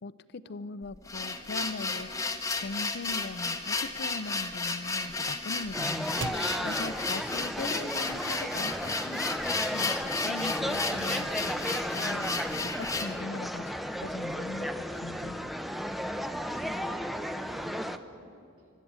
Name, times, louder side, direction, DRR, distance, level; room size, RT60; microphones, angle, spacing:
voice 1, 0.0-2.1 2.6-9.4 9.7-15.5, left 3 dB, 55° left, 16 dB, 0.5 m, -40 dB
sound 1, 0.8-13.2, left 3 dB, 15° left, 0.9 m, -33 dB
sound 2, 1.2-8.2, right 4 dB, 60° right, 0.6 m, -48 dB
sound 3, 5.7-18.0, equal, ahead, 0.6 m, -34 dB
voice 2, 16.1-18.7, right 2 dB, 85° right, 0 dB, 4.0 m, -55 dB
25.5 x 12.5 x 8.7 m, 2.6 s
head